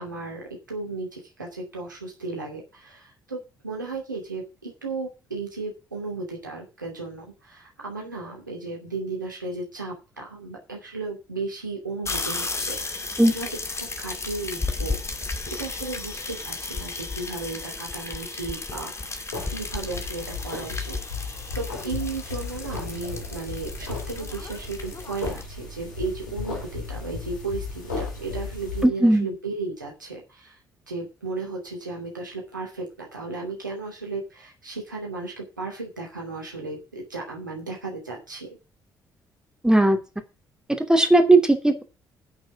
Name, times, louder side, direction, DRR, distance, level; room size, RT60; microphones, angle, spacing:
voice 1, 0.0-12.8 13.3-13.5 13.8-19.2 19.5-21.0 21.5-30.6 30.9-38.5, right 3 dB, 90° right, 0 dB, 2.7 m, -35 dB
sound 1, 12.0-25.4, left 3 dB, 25° left, 2.3 m, -34 dB
sound 2, 19.3-28.8, left 4 dB, 80° left, 4.0 m, -35 dB
voice 2, 28.8-29.3 39.6-40.0 40.7-41.8, right 2 dB, 5° right, 5 dB, 2.9 m, -17 dB
10.5 x 6.2 x 8.5 m, 0.30 s
figure-of-eight pair, 45°, 10 cm